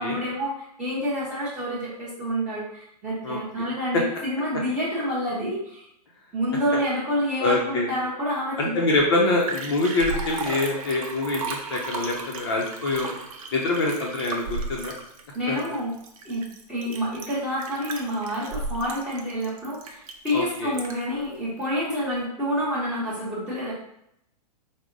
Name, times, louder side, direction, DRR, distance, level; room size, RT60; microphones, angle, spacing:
voice 1, 0.0-5.8 6.3-8.9 15.3-15.9 16.2-23.7, equal, 5° right, -9 dB, 0.9 m, -28 dB
voice 2, 7.4-7.9 8.6-11.4 11.7-13.1 13.5-14.9 15.5-15.6 20.3-20.7, left 2 dB, 35° left, -1 dB, 0.6 m, -25 dB
Liquid, 9.0-9.1 9.2-21.2 21.6-21.7, right 4 dB, 55° right, 0.7 m, -35 dB
4.8 x 2.1 x 3.8 m, 0.76 s
hypercardioid pair, 170°, 21 cm